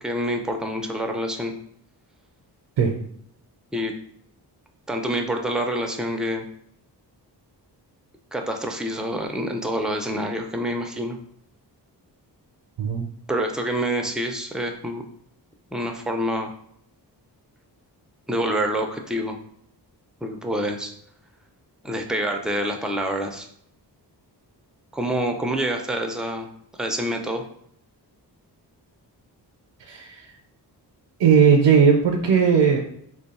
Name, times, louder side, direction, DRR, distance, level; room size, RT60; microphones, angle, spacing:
voice 1, 0.0-1.5 3.7-3.9 4.9-6.4 8.3-11.2 13.3-15.0 15.7-16.5 18.3-19.4 20.2-20.9 21.8-23.5 24.9-26.5 26.8-27.4, equal, ahead, 3 dB, 0.3 m, -27 dB
voice 2, 29.9-30.2 31.2-32.8, right 6 dB, 80° right, 2 dB, 0.6 m, -17 dB
3.0 x 2.2 x 4.0 m, 0.69 s
wide cardioid pair, 100°, 42 cm